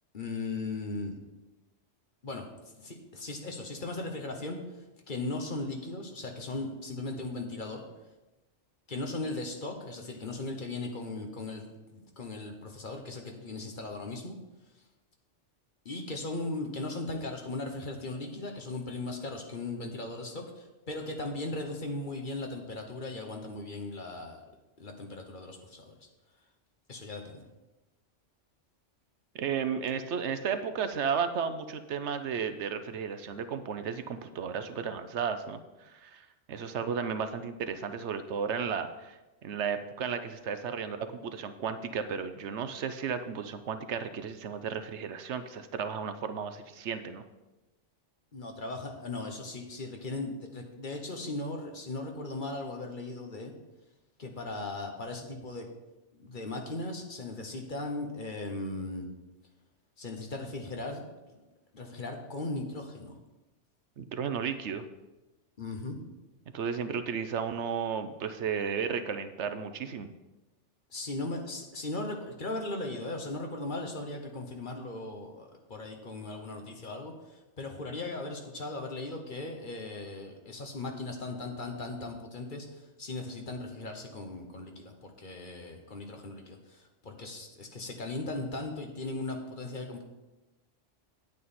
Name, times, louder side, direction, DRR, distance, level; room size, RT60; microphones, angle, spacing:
voice 1, 0.1-1.2 2.2-2.5 2.8-7.8 8.9-14.4 15.8-24.4 24.8-26.1 26.9-27.4 48.3-53.5 54.2-55.7 56.1-59.1 60.0-61.0 61.7-63.2 65.6-66.0 70.9-90.0, left 2 dB, 45° left, 3 dB, 1.2 m, -38 dB
voice 2, 29.3-36.2 36.5-47.2 64.0-64.8 66.5-70.1, right 6 dB, 70° right, 10 dB, 0.9 m, -34 dB
9.3 x 8.6 x 4.2 m, 1.1 s
omnidirectional pair, 1.2 m